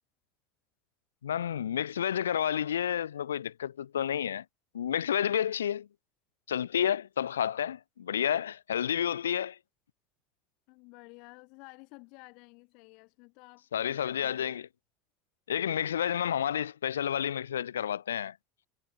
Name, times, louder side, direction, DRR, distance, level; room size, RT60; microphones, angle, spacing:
voice 1, 1.2-4.4 4.7-5.9 6.5-9.6 13.7-14.7 15.5-18.4, left 9 dB, 80° left, 0.4 m, -30 dB
voice 2, 10.7-14.6, left 30 dB, 60° left, 4.2 m, -52 dB
figure-of-eight pair, 70°, 0 cm